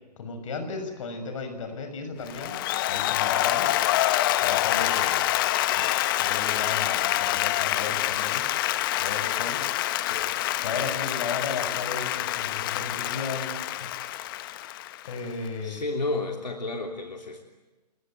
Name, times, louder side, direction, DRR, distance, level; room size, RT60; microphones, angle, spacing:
voice 1, 0.2-3.7 4.4-5.3 5.7-8.5 9.0-9.7 10.6-13.9 15.0-15.8, left 4 dB, 50° left, 7 dB, 6.4 m, -35 dB
Applause, 2.3-15.5, left 15 dB, 30° left, 1.0 m, -26 dB
voice 2, 10.0-10.3 15.6-17.4, left 2 dB, 80° left, 2 dB, 3.2 m, -32 dB
29.0 x 21.0 x 9.3 m, 1.2 s
figure-of-eight pair, 135°, 21 cm